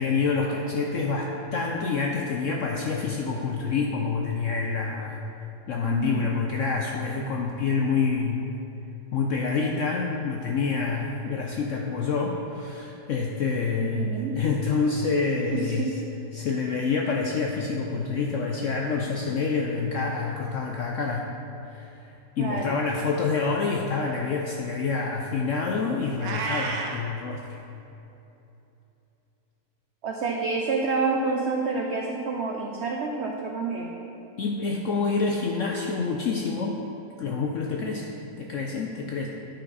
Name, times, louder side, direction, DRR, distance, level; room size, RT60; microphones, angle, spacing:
voice 1, 0.0-5.2 5.7-8.4 9.1-15.9 16.3-21.3 21.6-22.1 22.4-27.6 34.4-36.8 37.2-38.1 38.4-39.3, left 4 dB, 75° left, 0 dB, 0.7 m, -27 dB
voice 2, 5.8-6.3 13.8-14.4 15.5-16.0 22.4-22.8 30.0-33.9, right 4 dB, 80° right, 0 dB, 0.6 m, -28 dB
Meow, 26.2-27.0, right 4 dB, 65° right, 1.1 m, -30 dB
10.0 x 5.7 x 4.0 m, 2.9 s
omnidirectional pair, 1.9 m